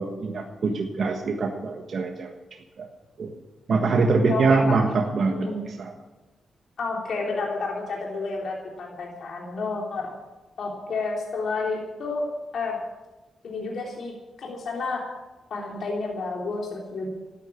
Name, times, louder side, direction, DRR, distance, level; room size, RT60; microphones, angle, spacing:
voice 1, 0.0-2.3 2.8-2.9 3.2-3.3 3.7-5.9, right 4 dB, 65° right, 1 dB, 1.5 m, -24 dB
voice 2, 4.0-4.8 5.3-5.6 6.8-10.1 10.6-12.2 12.5-12.8 13.4-14.1 14.4-15.0 15.5-17.1, left 3 dB, 70° left, -2 dB, 3.1 m, -30 dB
13.0 x 10.0 x 8.5 m, 1.1 s
cardioid pair, 70°, 0 cm